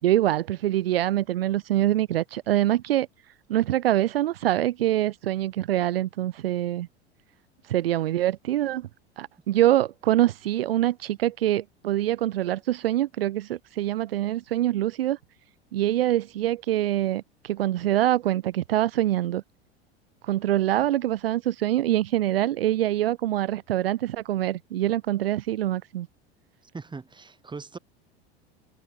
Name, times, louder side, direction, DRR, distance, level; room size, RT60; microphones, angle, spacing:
voice 1, 0.0-3.1 3.5-6.9 7.7-8.9 9.2-15.2 15.7-19.4 20.2-26.1, right 13 dB, 60° right, 2.6 m, -24 dB
voice 2, 26.7-27.8, right 4 dB, 15° right, 6.1 m, -39 dB
figure-of-eight pair, 80°, 32 cm